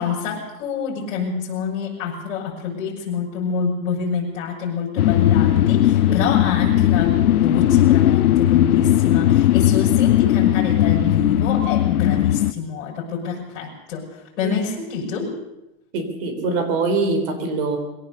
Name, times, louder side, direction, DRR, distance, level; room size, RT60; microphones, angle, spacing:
voice 1, 0.0-15.4, left 5 dB, 55° left, -4 dB, 6.5 m, -27 dB
sound 1, 5.0-12.5, left 13 dB, 90° left, 0.9 m, -17 dB
voice 2, 15.9-17.8, right 3 dB, 40° right, 7 dB, 3.9 m, -23 dB
22.5 x 17.0 x 7.0 m, 0.93 s
supercardioid pair, 170°, 43 cm